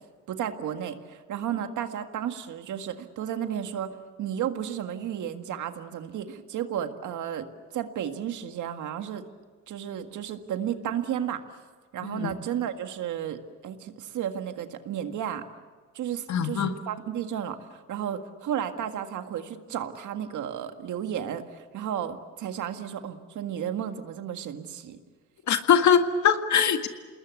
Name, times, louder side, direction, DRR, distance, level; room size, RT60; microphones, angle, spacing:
voice 1, 0.3-7.5 7.7-9.2 9.7-11.4 11.9-15.4 15.9-25.0, right 9 dB, 75° right, 7 dB, 1.9 m, -33 dB
voice 2, 12.0-12.3 16.3-16.7 25.5-26.9, left 7 dB, 70° left, 7 dB, 1.9 m, -22 dB
28.0 x 20.5 x 8.3 m, 1.4 s
cardioid pair, 90°, 30 cm